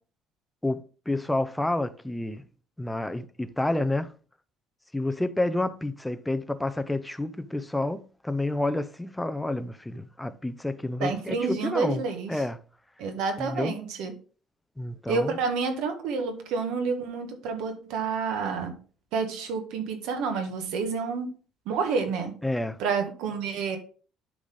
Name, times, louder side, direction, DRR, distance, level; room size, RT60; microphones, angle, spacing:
voice 1, 0.6-2.4 2.8-4.1 4.9-12.0 12.3-12.6 13.4-13.8 14.8-15.4 22.4-22.8, left 2 dB, 5° left, 0.4 m, -29 dB
voice 2, 11.0-12.4 13.0-14.1 15.1-18.8 19.1-21.3 21.7-22.4 22.8-23.8, right 5 dB, 80° right, 1.7 m, -29 dB
11.5 x 4.0 x 3.7 m
cardioid pair, 175°, 0 cm